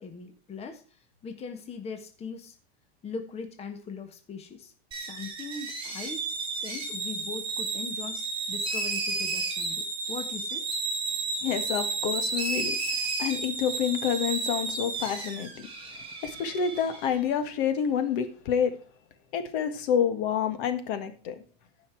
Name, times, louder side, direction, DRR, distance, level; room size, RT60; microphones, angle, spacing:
voice 1, 0.0-2.6 3.0-6.3 6.6-8.2 8.5-10.6, left 5 dB, 20° left, 6 dB, 1.4 m, -40 dB
sound 1, 4.9-17.2, right 4 dB, 15° right, 3.8 m, -32 dB
voice 2, 11.4-15.7 16.2-18.7 19.3-21.4, left 8 dB, 55° left, 9 dB, 1.7 m, -28 dB
14.0 x 5.8 x 4.6 m, 0.38 s
supercardioid pair, 140°, 32 cm